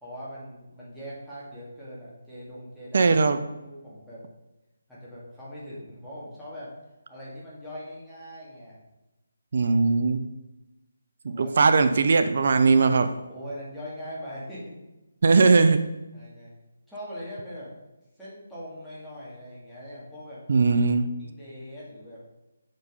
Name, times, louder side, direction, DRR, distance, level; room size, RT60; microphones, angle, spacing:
voice 1, 0.0-3.2 3.5-4.2 4.9-6.7 7.1-8.8 10.1-10.2 11.3-11.6 13.3-14.8 16.1-16.5 16.9-17.7 18.2-20.4 21.2-22.2, equal, ahead, -12 dB, 2.5 m, -41 dB
voice 2, 2.9-3.4 9.5-10.2 11.2-13.1 15.2-15.8 20.5-21.0, right 4 dB, 55° right, 9 dB, 0.6 m, -19 dB
6.2 x 5.2 x 5.4 m, 0.99 s
figure-of-eight pair, 155°, 0 cm